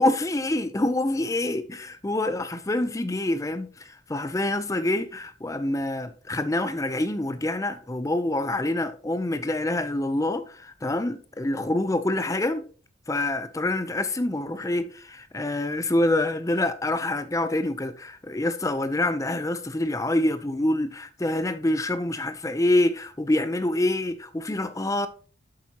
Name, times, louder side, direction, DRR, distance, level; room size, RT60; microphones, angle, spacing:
voice 1, 0.0-12.6 13.1-25.1, left 1 dB, 15° left, 0.5 m, -26 dB
8.1 x 7.4 x 2.8 m
head